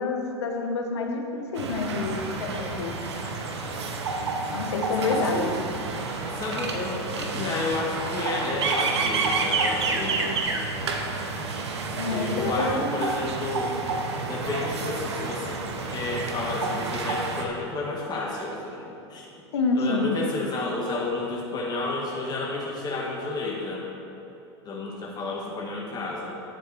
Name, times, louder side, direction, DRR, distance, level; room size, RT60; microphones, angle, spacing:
voice 1, 0.0-3.0 4.5-5.6 11.9-13.1 19.5-20.2, left 3 dB, 80° left, 3 dB, 1.3 m, -28 dB
sound 1, 1.5-17.4, right 4 dB, 80° right, 1.0 m, -29 dB
voice 2, 5.0-5.5 6.3-10.4 12.1-13.8 14.3-15.6 15.9-19.3 19.7-23.9 24.6-26.4, left 3 dB, 30° left, -3 dB, 1.6 m, -31 dB
10.5 x 7.5 x 4.7 m, 2.7 s
hypercardioid pair, 90°, 14 cm